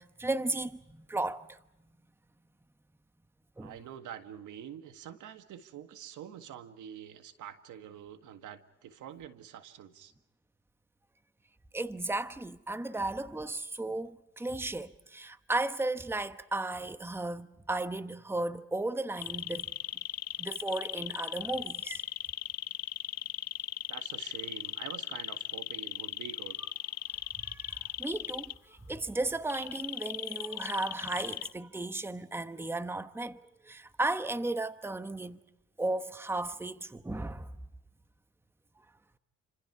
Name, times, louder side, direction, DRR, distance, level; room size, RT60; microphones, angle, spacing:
voice 1, 0.0-1.6 3.6-3.7 11.7-19.7 20.4-22.0 27.4-35.4 35.8-37.5, right 2 dB, 10° right, 1.0 m, -35 dB
voice 2, 3.6-10.1 23.9-26.6, right 9 dB, 85° right, 1.8 m, -46 dB
sound 1, 19.2-28.5 29.5-31.5, left 11 dB, 60° left, 0.9 m, -37 dB
29.0 x 26.0 x 4.8 m
cardioid pair, 90°, 30 cm